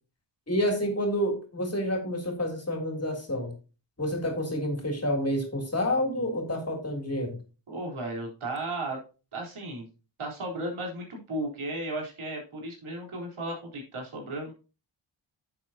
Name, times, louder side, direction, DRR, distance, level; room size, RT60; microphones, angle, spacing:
voice 1, 0.5-3.5 4.0-7.4, equal, 30° left, 2 dB, 3.2 m, -29 dB
voice 2, 7.7-9.0 9.3-9.9 10.2-14.5, right 1 dB, 75° right, -1 dB, 4.0 m, -35 dB
10.5 x 7.5 x 2.8 m, 0.33 s
wide cardioid pair, 95°, 50 cm